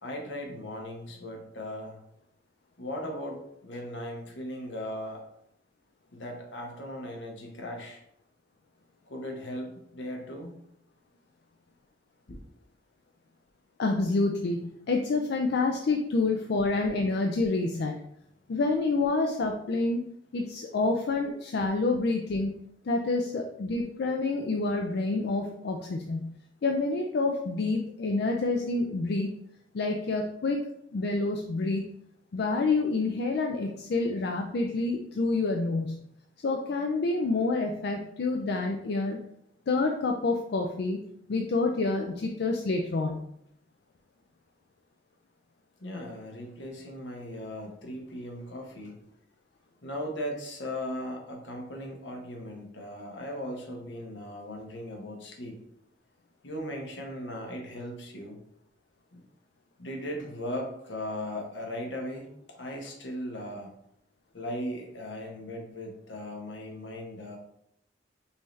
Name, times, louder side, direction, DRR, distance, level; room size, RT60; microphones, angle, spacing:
voice 1, 0.0-2.0 2.8-5.2 6.1-8.0 9.1-10.5 12.3-12.4 45.8-49.0 49.8-55.6 56.4-58.4 59.1-59.2 59.8-63.7 64.3-67.4, left 1 dB, 80° left, 2 dB, 1.0 m, -38 dB
voice 2, 13.8-18.0 18.5-20.1 20.3-22.5 22.8-26.3 26.6-29.3 29.7-30.6 30.9-31.9 32.3-36.0 36.4-39.2 39.7-41.0 41.3-43.2, left 3 dB, 65° left, 3 dB, 0.4 m, -28 dB
5.5 x 2.8 x 3.1 m, 0.74 s
head